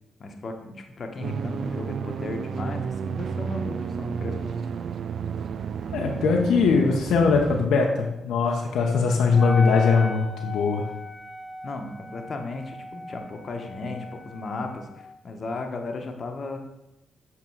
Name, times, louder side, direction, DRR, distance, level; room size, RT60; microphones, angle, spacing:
voice 1, 0.2-4.5 11.6-16.6, left 3 dB, 55° left, 4 dB, 1.0 m, -35 dB
sound 1, 1.2-7.7, right 6 dB, 65° right, 0.3 m, -31 dB
voice 2, 5.9-10.8, left 4 dB, 80° left, 1 dB, 0.7 m, -21 dB
Wind instrument woodwind instrument, 9.3-15.1, left 3 dB, 10° left, 0.8 m, -37 dB
7.3 x 3.6 x 4.6 m, 0.91 s
supercardioid pair, 55°, 0 cm